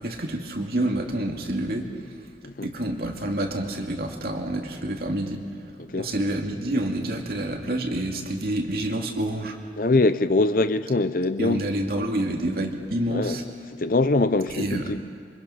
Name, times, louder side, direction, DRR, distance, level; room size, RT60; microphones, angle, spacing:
voice 1, 0.0-1.9 2.6-5.4 6.0-9.5 11.4-13.4 14.6-14.8, right 1 dB, 55° right, 2.4 m, -28 dB
voice 2, 5.8-6.1 9.8-11.7 13.1-13.4 13.7-15.1, left 2 dB, 50° left, 0.7 m, -23 dB
26.5 x 24.5 x 5.8 m
head